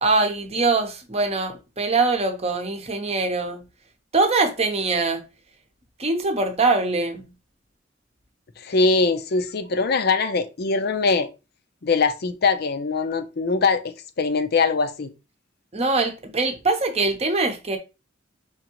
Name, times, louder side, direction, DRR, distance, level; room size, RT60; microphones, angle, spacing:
voice 1, 0.0-3.6 4.1-5.2 6.0-7.3 15.7-17.8, right 3 dB, 30° right, 0.8 m, -23 dB
voice 2, 8.6-11.3 11.8-15.1, left 4 dB, 55° left, 0.6 m, -22 dB
5.0 x 3.5 x 3.0 m
head